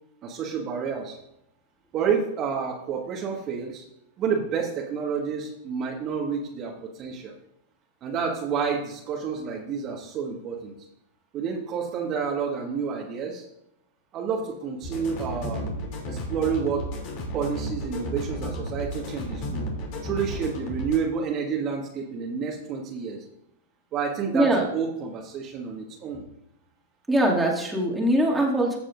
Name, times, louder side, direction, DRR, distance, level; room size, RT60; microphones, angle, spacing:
voice 1, 0.2-1.2 1.9-3.8 4.2-7.3 8.0-10.7 11.3-13.4 14.1-15.7 16.1-16.9 17.3-19.7 20.0-23.2 23.9-26.2, right 6 dB, 35° right, -1 dB, 1.6 m, -29 dB
sound 1, 14.8-21.0, equal, 50° left, 3.0 m, -33 dB
voice 2, 24.3-24.7 27.1-28.8, right 1 dB, 10° right, -3 dB, 2.3 m, -22 dB
14.5 x 7.3 x 2.6 m, 0.82 s
hypercardioid pair, 105°, 0 cm